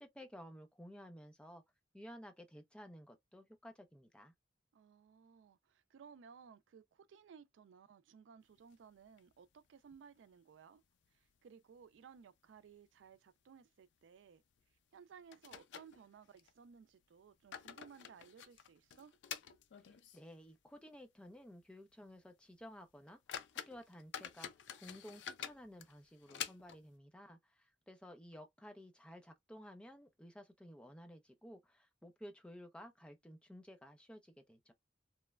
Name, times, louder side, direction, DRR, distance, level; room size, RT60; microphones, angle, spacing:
voice 1, 0.0-1.6 1.9-4.3 19.9-23.2 23.7-34.7, equal, 5° left, 0.4 m, -54 dB
voice 2, 4.7-10.8 11.1-14.4 14.9-19.1, right 6 dB, 85° right, 0.3 m, -59 dB
sound 1, 8.6-9.5 9.9-10.0 10.3-10.4 11.0-11.5 11.8-12.0 12.6-12.7 13.1-13.2 14.6-14.7 15.3-16.5 17.2-20.4 20.7-20.8 21.4-21.5 21.9-22.1 22.6-22.7 23.1-27.0, left 9 dB, 70° left, 0.4 m, -49 dB
3.0 x 2.1 x 2.2 m
head